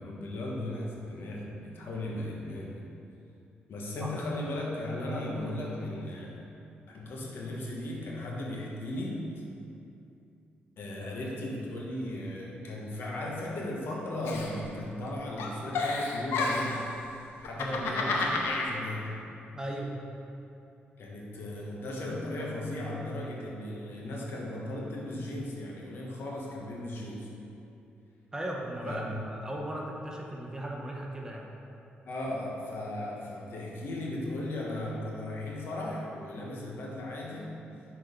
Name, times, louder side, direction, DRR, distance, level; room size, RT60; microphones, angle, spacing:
voice 1, 0.0-2.8 3.7-6.4 6.9-9.2 10.8-16.9 17.4-19.2 21.0-27.3 28.8-29.2 32.0-37.5, left 1 dB, 70° left, -3 dB, 1.3 m, -36 dB
Giggle, 14.2-15.1 15.4-16.8 17.4-18.7, left 3 dB, 90° left, 0.7 m, -30 dB
voice 2, 17.6-18.0 19.5-20.0 28.3-31.5, right 1 dB, 15° right, -1 dB, 1.0 m, -37 dB
6.1 x 4.6 x 5.1 m, 2.7 s
cardioid pair, 75°, 4 cm